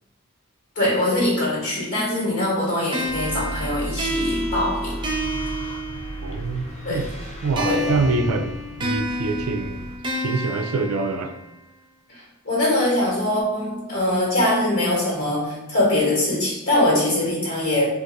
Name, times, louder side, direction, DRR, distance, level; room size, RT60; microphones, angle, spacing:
voice 1, 0.7-5.0 6.8-7.1 7.6-8.0 12.1-17.9, left 1 dB, 60° left, -6 dB, 1.4 m, -22 dB
sound 1, 2.9-6.5 7.6-11.6, equal, 20° right, 0.5 m, -30 dB
sound 2, 3.1-10.0, equal, 30° left, 0.6 m, -34 dB
voice 2, 6.2-7.1 7.4-8.5 8.8-9.8 10.2-11.3, right 3 dB, 90° right, 7 dB, 0.4 m, -25 dB
2.6 x 2.5 x 3.9 m, 1.0 s
head